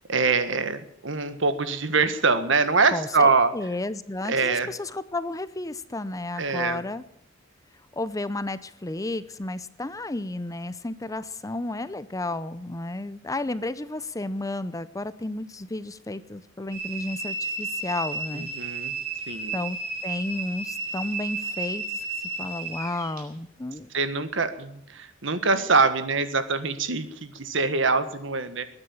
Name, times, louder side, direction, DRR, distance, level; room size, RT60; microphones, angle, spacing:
voice 1, 0.1-3.5 4.3-4.7 6.4-6.8 18.3-18.9 19.3-19.5 23.9-28.6, right 4 dB, 65° right, 11 dB, 1.6 m, -24 dB
voice 2, 2.9-7.0 8.0-18.5 19.5-19.8 20.0-21.8 22.4-23.9, left 2 dB, 15° left, 14 dB, 0.6 m, -32 dB
sound 1, 16.7-23.2, right 3 dB, 50° right, 4.5 m, -33 dB
20.5 x 9.8 x 7.2 m, 0.74 s
head